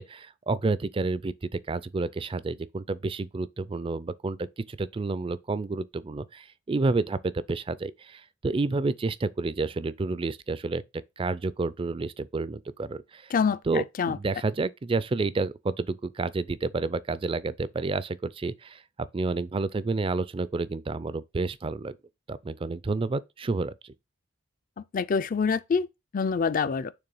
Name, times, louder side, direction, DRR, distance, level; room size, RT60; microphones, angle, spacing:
voice 1, 0.0-10.8 11.2-13.3 13.7-21.9 22.3-23.9, right 3 dB, 25° right, 0.3 m, -30 dB
voice 2, 13.3-14.2 24.9-25.9 26.1-26.9, left 5 dB, 40° left, 0.4 m, -26 dB
6.9 x 3.2 x 5.4 m
head